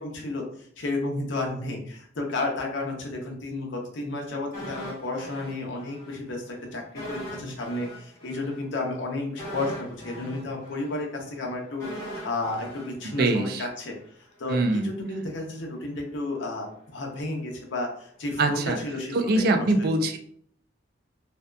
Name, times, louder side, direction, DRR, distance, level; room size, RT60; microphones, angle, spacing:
voice 1, 0.0-13.9 14.4-19.9, left 2 dB, 70° left, 1 dB, 0.6 m, -32 dB
sound 1, 4.5-6.2 6.4-6.6 6.9-14.0 14.3-14.5, equal, 20° left, 1.0 m, -40 dB
voice 2, 13.0-13.6 14.5-14.9 18.4-18.8 19.1-20.2, right 2 dB, 55° right, 7 dB, 0.3 m, -23 dB
2.7 x 2.2 x 2.2 m, 0.62 s
head